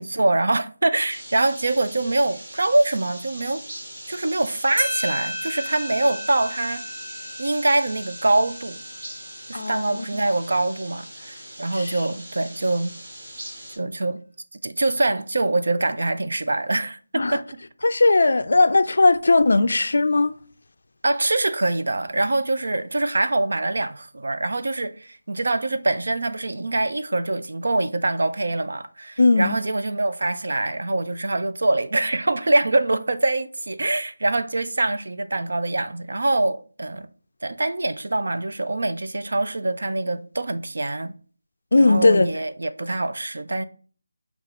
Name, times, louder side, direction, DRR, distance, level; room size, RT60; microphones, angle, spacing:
voice 1, 0.0-3.6 4.1-6.8 7.4-8.8 9.5-13.0 13.8-14.2 14.6-17.4 21.0-37.1 37.4-41.1 41.8-43.6, right 2 dB, 60° right, 0.5 m, -24 dB
sound 1, 1.1-13.8, right 1 dB, 30° right, 2.4 m, -40 dB
sound 2, 4.4-4.5 4.8-9.9, equal, 10° right, 2.0 m, -34 dB
voice 2, 9.5-10.1 11.7-11.8 17.2-17.4 17.8-20.3 29.2-29.6 41.7-42.3, left 3 dB, 55° left, 0.3 m, -18 dB
5.8 x 2.4 x 3.6 m
figure-of-eight pair, 180°, 0 cm